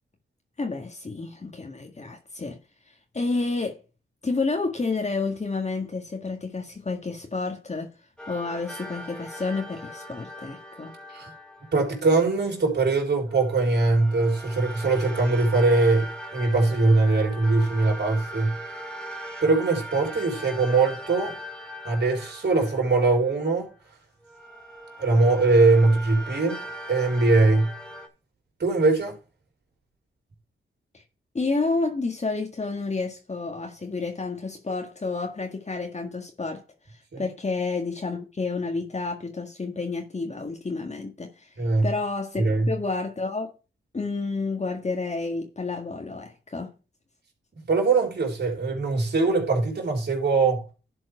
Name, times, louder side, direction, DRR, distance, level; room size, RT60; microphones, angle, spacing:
voice 1, 0.6-2.6 2.9-3.8 4.2-7.9 8.3-10.9 30.9-31.0 31.3-36.6 36.9-41.5 41.8-43.5 43.9-46.7, left 3 dB, 35° left, 1.8 m, -30 dB
sound 1, 8.2-12.4 13.3-23.7 24.2-28.1, right 1 dB, 5° left, 2.5 m, -40 dB
voice 2, 11.7-18.6 19.4-21.4 21.8-23.7 25.0-26.6 26.9-27.7 28.6-29.2 37.1-37.2 41.6-41.9 42.4-42.7 47.7-50.6, right 3 dB, 55° right, 3.8 m, -21 dB
11.0 x 4.6 x 4.8 m
cardioid pair, 55°, 20 cm